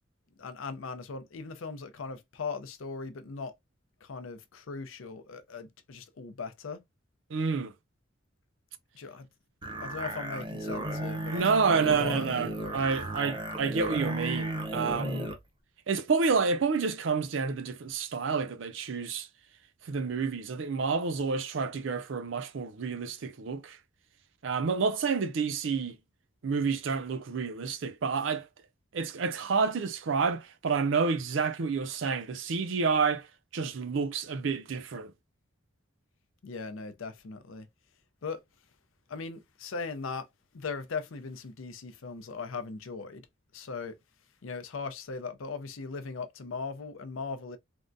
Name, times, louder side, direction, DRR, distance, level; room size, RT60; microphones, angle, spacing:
voice 1, 0.4-3.5 4.0-6.8 8.9-9.3 9.8-12.8 36.4-37.7 38.2-38.4 39.1-40.3 40.5-43.3 43.5-44.0 44.4-47.6, left 4 dB, 85° left, 0.5 m, -39 dB
voice 2, 7.3-7.7 11.3-15.3 15.9-19.3 19.8-23.8 24.4-26.0 26.4-28.5 28.9-33.3 33.5-35.1, right 5 dB, 70° right, 0.5 m, -29 dB
sound 1, 9.6-15.4, right 1 dB, 25° right, 0.6 m, -34 dB
3.5 x 2.1 x 2.6 m
head